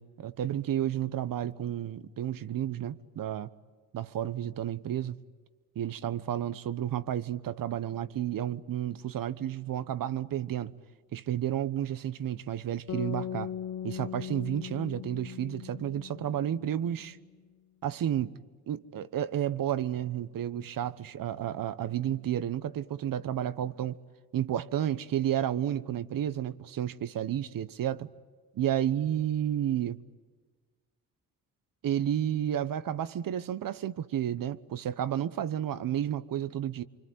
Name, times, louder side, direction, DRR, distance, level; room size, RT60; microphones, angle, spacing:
voice 1, 0.0-3.5 3.9-5.2 5.7-10.7 11.1-13.5 13.8-17.2 17.8-18.4 18.7-24.0 24.3-28.1 28.5-30.0 31.8-36.8, right 11 dB, 65° right, 1.1 m, -31 dB
sound 1, 12.9-17.1, left 9 dB, 55° left, 0.8 m, -39 dB
25.0 x 25.0 x 9.5 m
cardioid pair, 65°, 36 cm